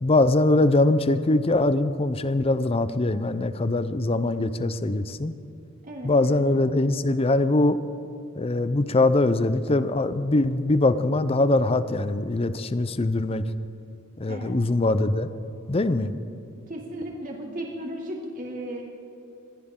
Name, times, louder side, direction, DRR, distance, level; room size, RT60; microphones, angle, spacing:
voice 1, 0.0-5.3 6.0-7.8 8.4-13.4 14.2-15.3 15.7-16.1, left 2 dB, 25° left, 13 dB, 0.5 m, -22 dB
voice 2, 5.8-6.4 14.3-14.6 16.6-18.8, right 1 dB, 40° right, -1 dB, 2.7 m, -35 dB
21.5 x 15.0 x 3.8 m, 2.7 s
head